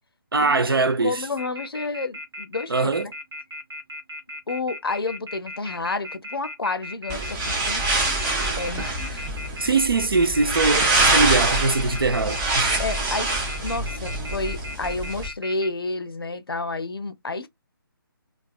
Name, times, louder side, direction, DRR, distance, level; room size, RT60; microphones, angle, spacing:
voice 1, 0.3-1.3 2.7-3.1 9.6-12.8, right 3 dB, 70° right, 0.6 m, -22 dB
voice 2, 1.0-3.1 4.5-7.8 8.6-9.3 9.6-9.7 10.8-11.1 12.8-13.4 13.6-17.5, left 3 dB, 75° left, 0.5 m, -30 dB
Telephone, 1.4-15.7, left 1 dB, 90° right, 0.9 m, -36 dB
sound 1, 7.1-15.3, right 2 dB, 10° right, 0.4 m, -25 dB
2.3 x 2.3 x 2.3 m
figure-of-eight pair, 145°, 12 cm